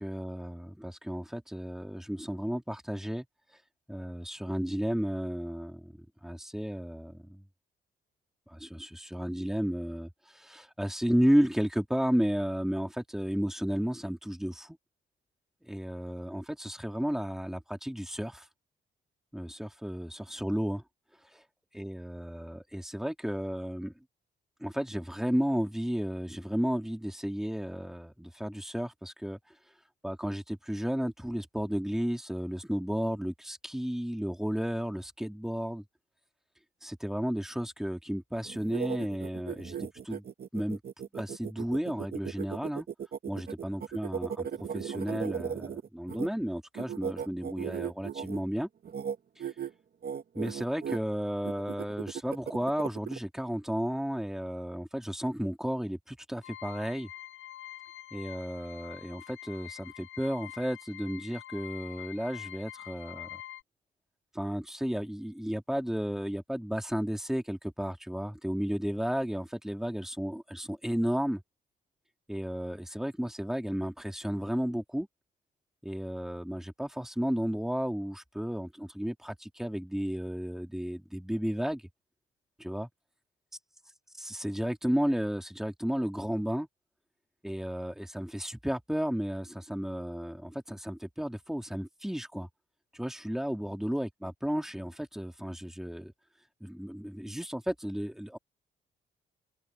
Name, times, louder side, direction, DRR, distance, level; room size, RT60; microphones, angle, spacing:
voice 1, 0.0-3.3 3.9-7.4 8.5-14.8 15.7-18.5 19.3-20.8 21.7-23.9 24.6-29.4 30.0-35.8 36.8-40.2 40.5-40.8 41.1-42.9 43.3-44.5 44.7-48.7 49.4-49.5 50.3-57.1 58.1-63.3 64.3-71.4 72.3-75.1 75.8-81.8 82.6-82.9 84.2-86.7 87.4-92.5 92.9-96.1 96.6-98.4, equal, ahead, 4.1 m, -33 dB
sound 1, 38.5-46.3 46.7-48.4 48.8-49.1 49.4-49.7 50.0-51.0 51.4-53.2, right 8 dB, 50° right, 1.8 m, -37 dB
sound 2, 56.4-63.6, left 13 dB, 85° left, 7.6 m, -46 dB
cardioid pair, 90°, 20 cm